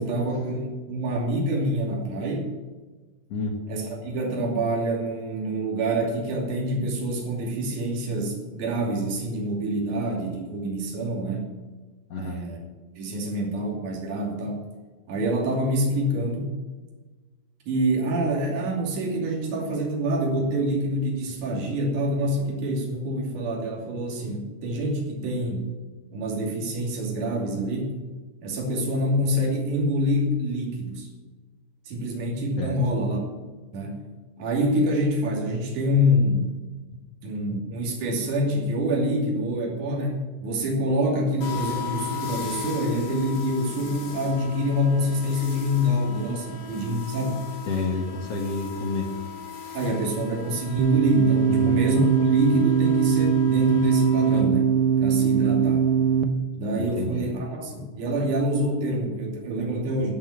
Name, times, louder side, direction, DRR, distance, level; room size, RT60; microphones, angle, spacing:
voice 1, 0.0-2.5 3.7-11.5 12.2-12.6 13.0-14.6 15.1-16.5 17.7-25.7 26.1-27.9 28.4-31.1 31.9-33.2 33.7-34.0 34.4-36.5 37.2-47.4 49.7-55.9 56.6-60.1, equal, 50° right, -2 dB, 3.8 m, -26 dB
voice 2, 12.1-12.4 32.6-32.8 36.9-37.0 47.6-49.1 51.5-51.9 56.7-57.3, left 3 dB, 65° left, 1 dB, 1.6 m, -29 dB
sound 1, 41.4-54.4, left 7 dB, 45° left, 3.3 m, -38 dB
sound 2, 50.8-56.2, right 7 dB, 75° right, 2.5 m, -21 dB
14.0 x 6.1 x 9.8 m, 1.3 s
omnidirectional pair, 5.1 m